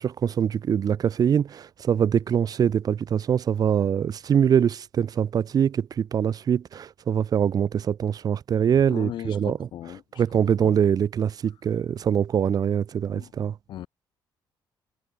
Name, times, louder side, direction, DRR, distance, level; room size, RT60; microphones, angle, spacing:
voice 1, 0.0-9.7 10.1-13.5, right 8 dB, 50° right, 2.2 m, -23 dB
voice 2, 8.9-10.0 10.6-10.7 13.1-13.3 13.7-13.9, left 12 dB, 65° left, 0.9 m, -37 dB
cardioid pair, 120°, 9 cm